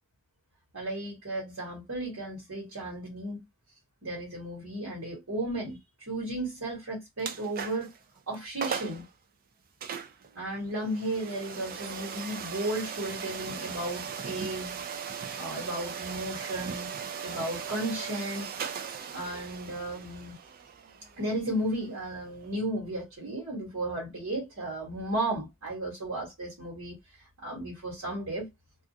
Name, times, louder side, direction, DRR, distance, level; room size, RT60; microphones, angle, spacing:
voice 1, 0.7-3.4 4.0-5.8 6.1-7.9 8.3-9.0 10.3-14.8 15.4-16.9 17.2-18.5 18.8-18.9 19.1-20.4 21.2-27.0 27.4-28.5, right 1 dB, 75° right, 1.3 m, -34 dB
sound 1, 7.2-8.0 8.3-8.4 8.6-9.1 9.8-22.5, right 7 dB, 45° right, 0.4 m, -38 dB
2.4 x 2.3 x 2.7 m
head